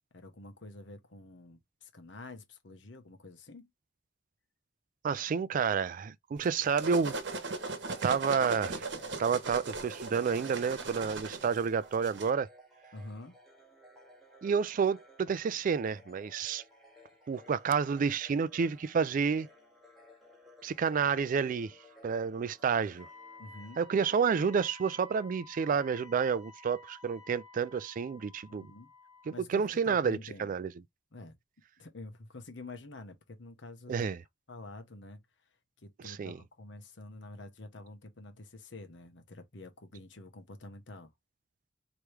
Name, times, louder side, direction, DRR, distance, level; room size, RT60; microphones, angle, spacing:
voice 1, 0.1-3.7 12.9-13.3 23.4-23.8 28.5-28.9 29.3-30.5 31.1-31.3 31.8-33.9 34.5-35.2 35.8-41.1, left 2 dB, 75° left, 1.1 m, -48 dB
voice 2, 5.0-7.1 8.0-8.8 9.2-12.5 14.4-16.6 17.3-19.5 20.6-21.7 22.0-23.1 23.8-28.7 29.3-30.7 33.9-34.2 36.0-36.4, right 6 dB, 45° right, 0.3 m, -30 dB
sound 1, 6.4-12.3, right 3 dB, 70° right, 1.1 m, -38 dB
sound 2, 7.3-24.1, left 1 dB, ahead, 2.2 m, -58 dB
Wind instrument woodwind instrument, 23.0-29.4, left 3 dB, 30° left, 3.1 m, -53 dB
4.7 x 3.1 x 3.2 m
head